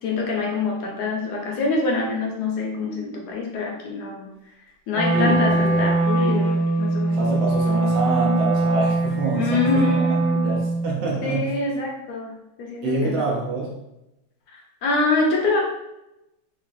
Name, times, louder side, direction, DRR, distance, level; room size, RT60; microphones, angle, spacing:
voice 1, 0.0-4.3 4.9-7.4 9.3-10.5 11.2-13.4 14.5-15.6, left 3 dB, 70° left, 0 dB, 1.0 m, -25 dB
Wind instrument woodwind instrument, 4.9-10.9, right 2 dB, 60° right, 1.2 m, -21 dB
voice 2, 5.1-5.9 7.1-9.7 10.4-11.5 12.8-13.7, right 2 dB, 75° right, -3 dB, 0.6 m, -26 dB
3.1 x 2.3 x 2.5 m, 0.89 s
omnidirectional pair, 1.9 m